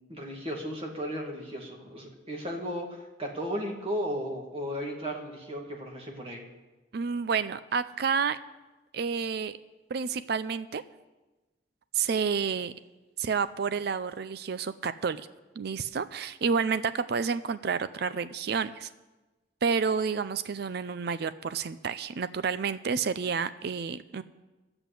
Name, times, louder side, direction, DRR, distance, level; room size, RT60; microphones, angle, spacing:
voice 1, 0.0-6.4, equal, 30° right, 1 dB, 2.0 m, -35 dB
voice 2, 6.9-8.4 8.9-9.6 9.9-10.8 11.9-12.7 13.2-15.2 15.6-18.9 19.6-24.2, right 5 dB, 60° right, 14 dB, 0.4 m, -30 dB
11.0 x 7.9 x 8.3 m, 1.1 s
head